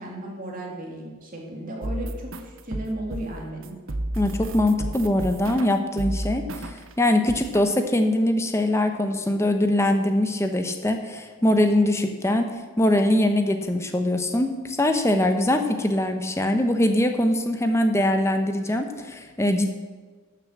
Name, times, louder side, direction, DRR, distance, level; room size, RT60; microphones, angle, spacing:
voice 1, 0.0-3.8, right 1 dB, 40° right, -1 dB, 2.5 m, -35 dB
sound 1, 1.8-6.9 7.3-7.7, right 1 dB, 65° right, 0.9 m, -32 dB
voice 2, 4.2-12.5 12.8-19.7, left 1 dB, 10° left, 6 dB, 0.8 m, -22 dB
12.0 x 6.9 x 7.3 m, 1.4 s
head